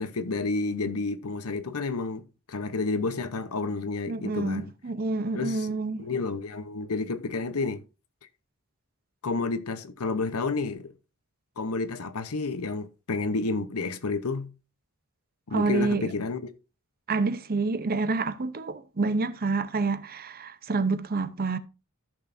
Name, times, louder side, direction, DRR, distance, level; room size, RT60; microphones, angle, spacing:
voice 1, 0.0-4.7 5.3-7.8 9.2-10.9 11.6-14.5 15.5-16.4, left 3 dB, 90° left, 0.9 m, -30 dB
voice 2, 4.1-6.1 15.5-16.1 17.1-21.6, right 3 dB, 45° right, 0.7 m, -28 dB
14.0 x 6.4 x 2.6 m
head